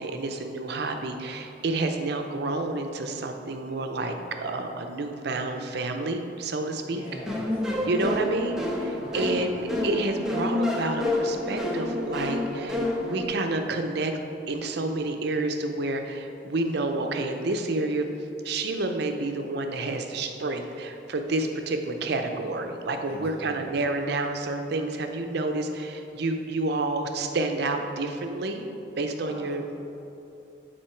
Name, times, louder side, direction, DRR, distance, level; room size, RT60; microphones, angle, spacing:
voice 1, 0.0-7.0 7.8-14.2 14.5-18.1 18.4-28.7 29.0-29.7, right 2 dB, 60° right, 5 dB, 0.6 m, -29 dB
voice 2, 6.9-8.2 8.9-9.6 23.1-23.8 29.3-29.7, equal, 30° left, -5 dB, 1.4 m, -43 dB
sound 1, 7.3-13.3, left 1 dB, 5° right, 0.6 m, -28 dB
7.6 x 4.4 x 4.5 m, 2.8 s
head